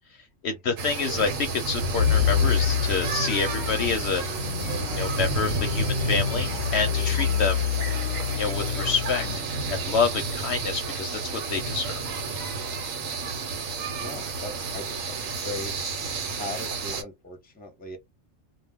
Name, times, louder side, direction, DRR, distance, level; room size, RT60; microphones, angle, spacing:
voice 1, 0.4-4.2 5.0-7.6 8.4-9.4 9.7-12.0, left 5 dB, 65° left, 0.8 m, -28 dB
sound 1, 0.8-17.0, right 3 dB, 80° right, 1.1 m, -31 dB
sound 2, 2.0-9.4, left 9 dB, 85° left, 1.0 m, -27 dB
voice 2, 13.9-15.7 16.4-18.0, left 2 dB, 10° left, 0.7 m, -38 dB
2.3 x 2.2 x 3.4 m
omnidirectional pair, 1.3 m